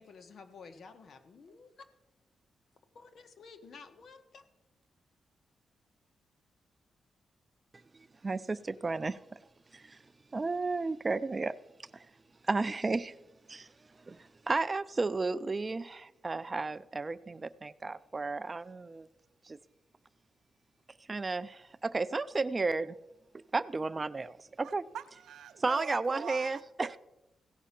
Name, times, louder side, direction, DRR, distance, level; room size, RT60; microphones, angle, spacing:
voice 1, 0.0-1.8 2.9-4.4, left 4 dB, 55° left, 8 dB, 1.2 m, -52 dB
voice 2, 7.9-9.4 9.7-10.0 10.3-11.5 11.9-12.1 12.5-13.2 13.5-13.7 14.1-19.1 19.5-19.6 21.1-23.0 23.5-24.8 25.6-26.9, right 3 dB, 25° right, 16 dB, 0.3 m, -33 dB
voice 3, 24.6-27.0, right 9 dB, 90° right, 12 dB, 0.6 m, -44 dB
16.5 x 5.5 x 5.8 m, 0.94 s
cardioid pair, 115°, 0 cm